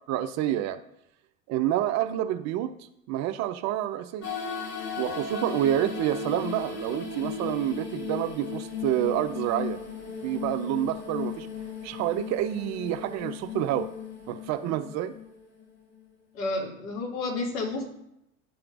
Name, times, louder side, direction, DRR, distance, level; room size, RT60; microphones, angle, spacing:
voice 1, 0.1-0.8 1.5-2.8 3.1-4.3 5.0-9.8 10.2-11.5 11.8-13.9 14.3-15.1, right 12 dB, 40° right, 9 dB, 0.5 m, -28 dB
sound 1, 4.2-16.0, left 6 dB, 40° left, 2.4 m, -36 dB
voice 2, 16.3-17.8, left 2 dB, 65° left, -2 dB, 2.4 m, -30 dB
11.5 x 4.4 x 2.5 m, 0.79 s
hypercardioid pair, 80°, 42 cm